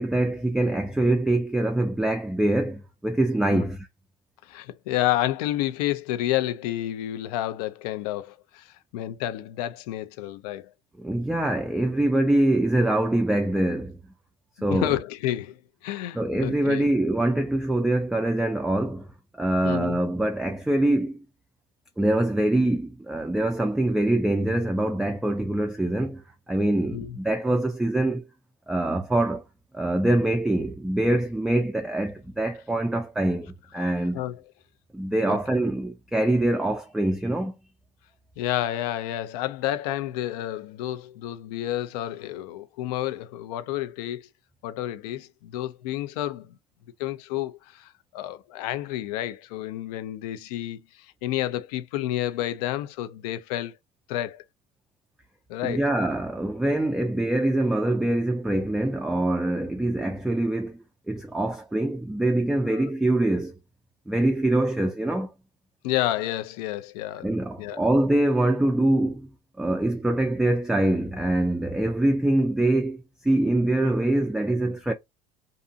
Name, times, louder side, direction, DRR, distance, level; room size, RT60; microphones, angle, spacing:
voice 1, 0.0-3.9 11.0-14.0 14.6-15.0 16.1-19.1 19.3-21.2 22.0-28.2 28.7-29.4 29.7-34.2 34.9-37.5 55.6-63.6 64.1-65.3 67.2-69.3 69.6-74.9, right 1 dB, 5° right, 0.3 m, -24 dB
voice 2, 4.5-8.7 8.9-10.7 14.7-15.6 15.8-16.9 19.6-20.0 26.9-27.1 34.1-34.4 35.2-35.4 38.4-44.3 44.6-46.5 47.0-50.8 51.2-53.8 54.1-54.4 55.5-55.8 62.7-62.8 65.8-67.3 67.6-67.8, left 13 dB, 75° left, 0.5 m, -30 dB
2.5 x 2.5 x 2.5 m
supercardioid pair, 95°, 20 cm